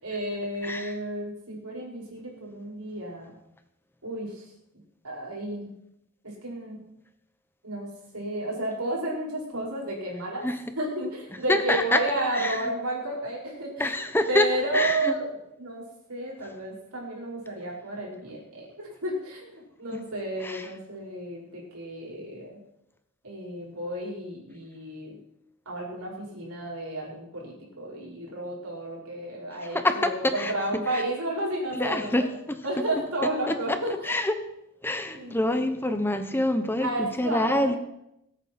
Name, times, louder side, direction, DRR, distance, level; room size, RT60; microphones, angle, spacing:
voice 1, 0.0-3.3 4.0-4.5 5.0-5.7 6.4-6.8 7.6-7.9 8.1-10.4 10.8-14.0 14.3-15.2 15.6-15.8 16.1-22.6 23.2-25.2 25.7-32.3 32.6-34.2 35.1-35.6 36.8-37.7, right 1 dB, 80° right, -3 dB, 5.7 m, -32 dB
voice 2, 0.6-1.0 10.4-10.6 11.5-12.0 12.3-12.7 13.8-14.5 14.7-15.1 19.9-20.0 20.4-20.7 29.7-30.5 30.9-31.0 31.7-32.2 33.5-33.8 34.0-34.3 34.8-37.8, left 1 dB, 10° left, 8 dB, 1.1 m, -26 dB
22.5 x 8.9 x 4.4 m, 0.82 s
head